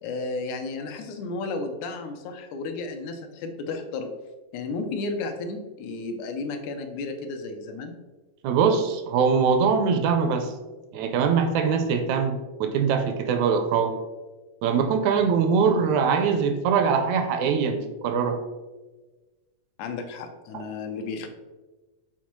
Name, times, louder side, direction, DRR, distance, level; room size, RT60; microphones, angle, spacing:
voice 1, 0.0-4.1 4.5-8.0 19.8-21.3, left 3 dB, 80° left, 5 dB, 2.0 m, -33 dB
voice 2, 8.4-10.5 10.9-13.9 14.6-18.4, right 6 dB, 80° right, 6 dB, 1.8 m, -22 dB
7.2 x 4.3 x 3.1 m, 1.2 s
omnidirectional pair, 3.4 m